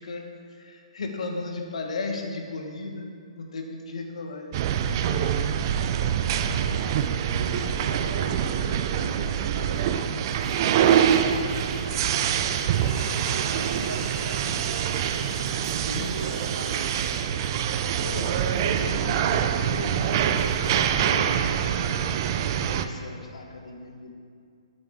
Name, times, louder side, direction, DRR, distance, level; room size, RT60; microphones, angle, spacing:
voice 1, 0.0-3.1 3.4-4.6 15.7-16.2 18.0-22.2 22.7-24.1, left 3 dB, 70° left, 3 dB, 1.4 m, -36 dB
sound 1, 4.5-22.9, right 8 dB, 40° right, 0.4 m, -25 dB
voice 2, 5.9-6.9 7.4-12.4 13.0-14.7 15.6-17.0, right 4 dB, 90° right, 6 dB, 0.9 m, -40 dB
sound 2, 10.3-17.5 17.9-20.8 21.3-21.6, right 1 dB, 5° right, 1.8 m, -44 dB
8.7 x 8.5 x 3.6 m, 2.3 s
hypercardioid pair, 145°, 4 cm